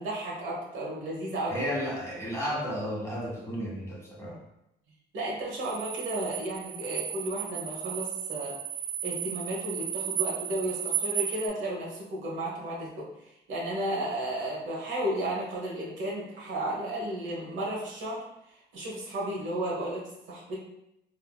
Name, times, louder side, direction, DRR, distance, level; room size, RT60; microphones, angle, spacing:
voice 1, 0.0-1.6 4.2-4.4 5.1-8.6 9.0-13.1 13.5-18.2 18.7-20.6, right 1 dB, 75° right, -3 dB, 1.0 m, -33 dB
voice 2, 1.5-4.4, equal, 15° left, -5 dB, 1.3 m, -33 dB
sound 1, 5.6-11.5, right 10 dB, 50° right, 0.4 m, -34 dB
3.5 x 2.6 x 2.2 m, 0.84 s
cardioid pair, 90°, 20 cm